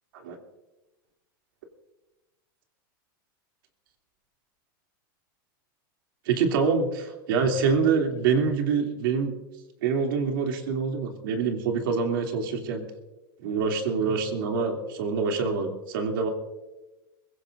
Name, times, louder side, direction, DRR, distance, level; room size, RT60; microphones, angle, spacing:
voice 1, 6.2-9.3 9.8-12.8 13.4-16.3, right 5 dB, 70° right, 2 dB, 2.9 m, -25 dB
23.5 x 17.0 x 2.6 m, 1.0 s
supercardioid pair, 155°, 12 cm